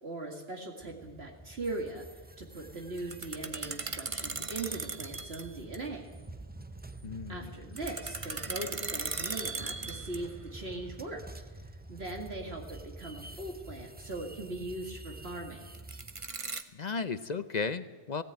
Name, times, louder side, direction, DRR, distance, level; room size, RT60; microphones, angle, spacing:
voice 1, 0.0-2.0 2.4-6.1 7.3-11.2 11.9-15.7, right 2 dB, 60° right, 0 dB, 2.3 m, -40 dB
sound 1, 0.8-16.3, right 2 dB, 15° right, 0.4 m, -48 dB
sound 2, 3.0-5.5 5.7-5.8 7.8-10.4 15.7-16.6, right 4 dB, 30° right, 0.9 m, -38 dB
voice 2, 7.0-7.5 16.7-18.2, left 4 dB, 45° left, 12 dB, 0.7 m, -34 dB
17.0 x 17.0 x 9.1 m, 1.4 s
omnidirectional pair, 1.2 m